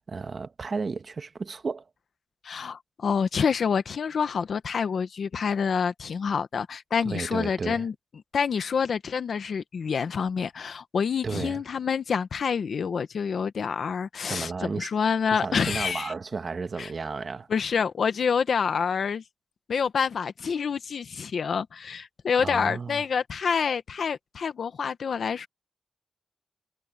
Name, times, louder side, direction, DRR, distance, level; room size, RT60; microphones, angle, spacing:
voice 1, 0.1-1.8 7.0-7.9 11.2-11.6 14.3-14.9 15.3-17.5 22.4-23.0, right 4 dB, 60° right, 1.3 m, -33 dB
voice 2, 2.4-7.9 8.3-16.1 16.8-16.9 17.5-19.2 19.7-25.5, left 6 dB, 85° left, 1.1 m, -27 dB
wide cardioid pair, 75°, 0 cm